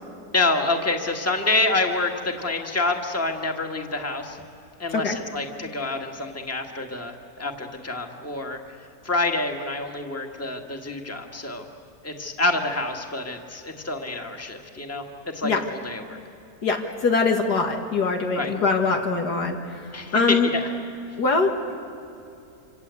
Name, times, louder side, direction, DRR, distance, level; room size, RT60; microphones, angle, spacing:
voice 1, 0.3-4.4 4.8-8.6 9.0-11.7 12.0-16.2 18.3-18.5 19.9-20.7, left 2 dB, 10° left, 3 dB, 1.7 m, -27 dB
voice 2, 16.6-19.6 20.1-20.5 21.2-21.5, left 4 dB, 85° left, 2 dB, 2.4 m, -22 dB
26.5 x 26.0 x 8.3 m, 2.7 s
omnidirectional pair, 1.7 m